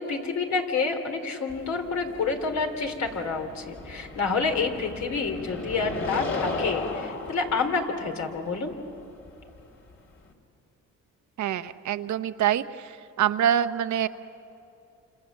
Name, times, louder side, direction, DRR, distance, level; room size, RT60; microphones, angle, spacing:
voice 1, 0.0-8.7, left 4 dB, 65° left, 4 dB, 3.3 m, -28 dB
sound 1, 1.5-10.3, left 3 dB, 40° left, 3.1 m, -36 dB
voice 2, 11.4-12.7 13.2-14.1, right 10 dB, 70° right, 11 dB, 0.9 m, -25 dB
28.5 x 27.5 x 7.3 m, 2.7 s
cardioid pair, 90°, 30 cm